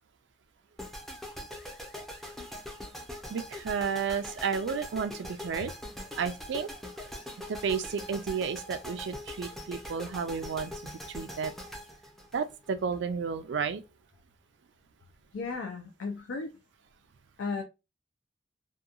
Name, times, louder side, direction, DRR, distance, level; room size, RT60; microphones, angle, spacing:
sound 1, 0.8-13.0, left 1 dB, ahead, 0.4 m, -42 dB
voice 1, 3.3-5.7 6.2-6.7 7.5-10.7 11.1-11.5 12.3-13.8, right 6 dB, 70° right, 0.4 m, -32 dB
voice 2, 15.3-16.5 17.4-17.6, left 4 dB, 85° left, 0.4 m, -34 dB
2.8 x 2.2 x 2.4 m
head